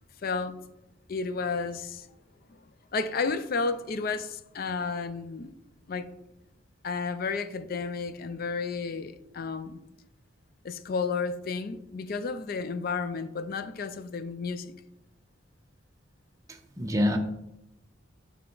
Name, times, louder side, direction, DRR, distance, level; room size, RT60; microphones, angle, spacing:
voice 1, 0.2-0.6 1.1-2.1 2.5-2.6 2.9-5.5 5.9-6.1 6.8-9.8 10.6-14.7, left 4 dB, 45° left, 0.4 m, -32 dB
voice 2, 16.5-17.2, left 1 dB, 15° right, 0.6 m, -27 dB
8.7 x 3.3 x 3.9 m
head